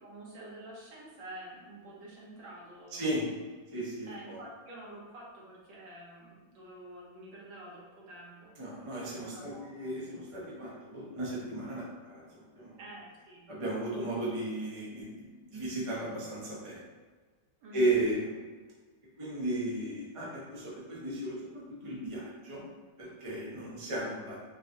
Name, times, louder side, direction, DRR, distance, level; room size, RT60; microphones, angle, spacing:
voice 1, 0.0-3.2 4.1-8.5 9.0-10.2 12.8-13.5 17.6-18.0, right 1 dB, 65° right, -5 dB, 1.7 m, -48 dB
voice 2, 2.9-3.3 3.7-4.4 8.6-12.7 13.5-16.8 17.7-18.4 19.2-22.7 23.0-24.4, right 1 dB, 30° right, -6 dB, 0.5 m, -35 dB
5.1 x 2.9 x 2.7 m, 1.4 s
omnidirectional pair, 2.2 m